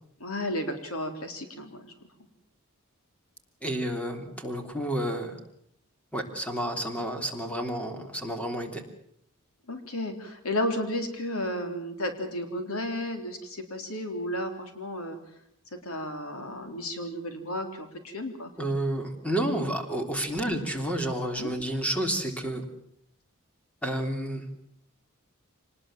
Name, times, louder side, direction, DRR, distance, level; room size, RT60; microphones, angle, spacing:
voice 1, 0.2-1.9 9.7-15.2 15.8-18.5 20.4-20.6 21.4-21.5, left 1 dB, 70° left, 6 dB, 3.8 m, -33 dB
voice 2, 3.6-5.4 6.1-8.8 18.6-22.6 23.8-24.4, right 1 dB, 5° left, 4 dB, 3.3 m, -30 dB
25.0 x 20.0 x 7.5 m, 0.71 s
head